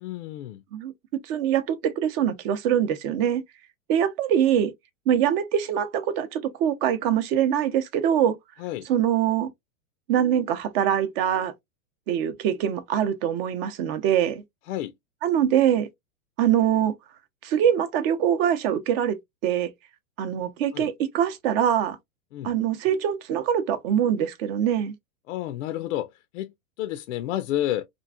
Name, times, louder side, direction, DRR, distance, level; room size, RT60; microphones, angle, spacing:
voice 1, 0.0-0.6 8.6-8.9 14.7-14.9 20.7-20.9 22.3-22.5 25.3-27.9, left 13 dB, 60° left, 0.5 m, -30 dB
voice 2, 1.2-3.4 3.9-4.7 5.1-8.4 8.9-9.5 10.1-11.5 12.1-14.4 15.2-15.9 16.4-16.9 17.4-19.2 19.4-19.7 20.2-22.0 22.4-24.9, right 9 dB, 45° right, 0.7 m, -23 dB
2.9 x 2.5 x 2.3 m
hypercardioid pair, 135°, 42 cm